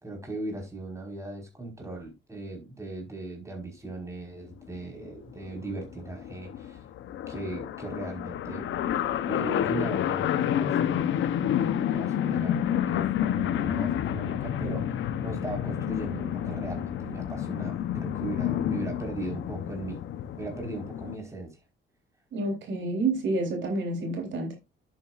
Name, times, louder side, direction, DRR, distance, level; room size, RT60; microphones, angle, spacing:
voice 1, 0.0-6.8 7.3-8.6 9.3-20.0 20.4-21.6, right 2 dB, 15° right, 4.8 m, -38 dB
sound 1, 4.6-4.8 5.1-5.2 5.3-21.2, left 10 dB, 75° left, 0.9 m, -29 dB
voice 2, 22.3-24.6, right 2 dB, 70° right, 3.7 m, -29 dB
10.5 x 9.0 x 2.5 m
cardioid pair, 90°, 20 cm